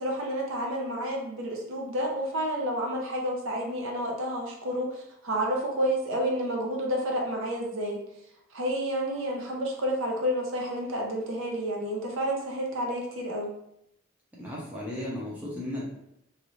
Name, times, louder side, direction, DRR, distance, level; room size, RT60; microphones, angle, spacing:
voice 1, 0.0-8.0 8.5-13.5, equal, 75° right, 0 dB, 0.6 m, -30 dB
voice 2, 14.4-15.8, left 1 dB, 5° right, -6 dB, 0.7 m, -35 dB
2.7 x 2.5 x 3.0 m, 0.80 s
head